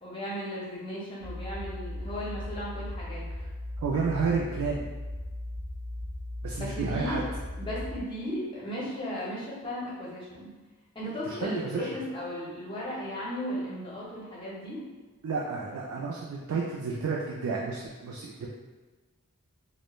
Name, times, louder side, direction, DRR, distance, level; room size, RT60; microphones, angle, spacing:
voice 1, 0.0-3.2 6.5-7.2 7.6-10.5 10.9-14.8, equal, 25° left, -7 dB, 0.6 m, -36 dB
sound 1, 1.2-8.0, left 1 dB, 5° right, 0.9 m, -37 dB
voice 2, 3.8-4.8 6.4-7.2 11.3-11.9 15.2-18.5, right 4 dB, 85° right, -4 dB, 0.3 m, -31 dB
3.0 x 2.1 x 2.2 m, 1.3 s
head